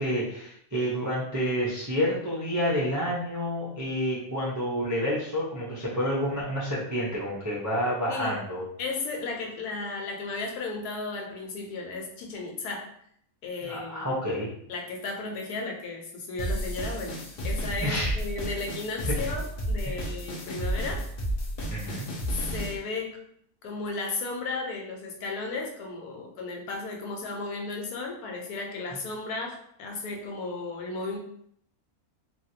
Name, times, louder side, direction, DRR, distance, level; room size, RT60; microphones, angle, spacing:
voice 1, 0.0-8.6 13.6-14.5 17.8-18.1 19.2-19.3 19.9-20.0 21.7-22.1, equal, 30° right, -8 dB, 0.3 m, -29 dB
voice 2, 8.8-12.9 13.4-14.1 14.7-17.2 17.4-21.0 22.3-23.2 23.6-31.2, left 3 dB, 85° left, 1 dB, 1.2 m, -34 dB
sound 1, 16.4-22.8, equal, 65° left, 0.5 m, -32 dB
3.0 x 2.4 x 2.7 m, 0.68 s
omnidirectional pair, 1.6 m